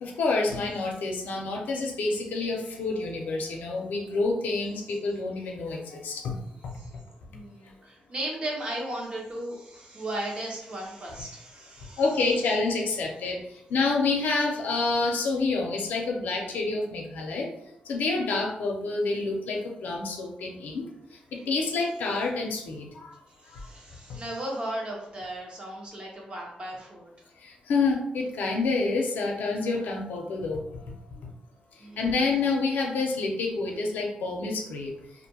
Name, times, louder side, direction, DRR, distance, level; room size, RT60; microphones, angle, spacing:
voice 1, 0.0-6.3 12.0-13.4 13.7-17.5 17.9-20.9 21.5-23.1 23.5-23.6 27.4-30.6 31.2-31.3 32.0-34.9, left 3 dB, 90° left, 0 dB, 0.5 m, -28 dB
voice 2, 7.3-12.0 23.3-27.1 31.8-32.1, right 1 dB, 35° right, -2 dB, 0.8 m, -36 dB
2.4 x 2.2 x 2.8 m, 0.75 s
cardioid pair, 115°, 3 cm